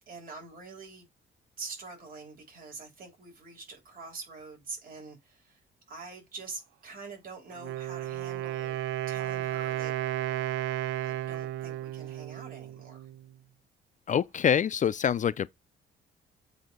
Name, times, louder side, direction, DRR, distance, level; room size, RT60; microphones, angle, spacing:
voice 1, 0.1-1.1 1.6-5.6 5.9-8.8 9.1-9.9 11.0-13.1, right 4 dB, 45° right, 3.3 m, -45 dB
Wind instrument woodwind instrument, 7.5-13.3, right 13 dB, 85° right, 0.4 m, -33 dB
voice 2, 14.1-15.5, left 8 dB, 40° left, 0.4 m, -25 dB
7.8 x 2.8 x 5.3 m
cardioid pair, 90°, 20 cm